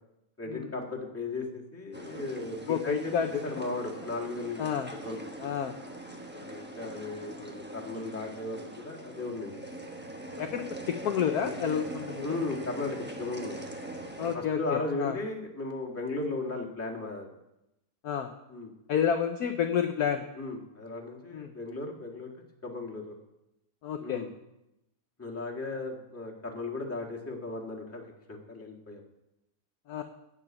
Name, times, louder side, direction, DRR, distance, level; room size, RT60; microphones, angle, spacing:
voice 1, 0.4-3.1 3.4-4.7 5.0-5.2 6.3-9.6 10.3-10.5 12.2-13.6 14.3-17.3 18.5-18.7 20.3-22.3 22.6-23.1 24.0-24.3 25.2-29.0, left 2 dB, 5° left, -2 dB, 1.6 m, -36 dB
sound 1, 1.9-14.3, right 1 dB, 15° right, 0.4 m, -42 dB
voice 2, 2.7-3.4 4.6-4.9 5.4-5.7 10.4-12.4 14.2-15.2 18.0-18.3 18.9-20.2 21.3-21.5 23.8-24.2 29.9-30.0, left 8 dB, 65° left, 6 dB, 0.9 m, -30 dB
13.5 x 4.9 x 8.7 m, 0.90 s
omnidirectional pair, 2.3 m